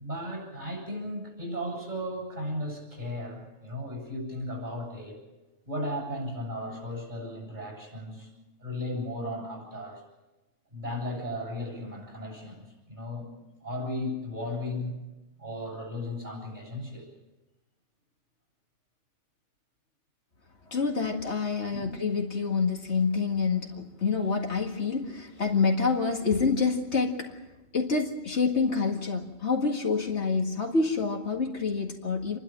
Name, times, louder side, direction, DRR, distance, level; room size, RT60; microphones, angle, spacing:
voice 1, 0.0-5.2 5.7-8.3 8.6-10.0 10.7-13.3 13.6-15.0 15.4-17.1 21.7-21.9, left 1 dB, 40° right, 1 dB, 8.1 m, -35 dB
voice 2, 20.7-27.4 27.7-32.4, left 4 dB, 65° left, 2 dB, 2.3 m, -27 dB
28.0 x 12.0 x 8.9 m, 1.1 s
omnidirectional pair, 1.3 m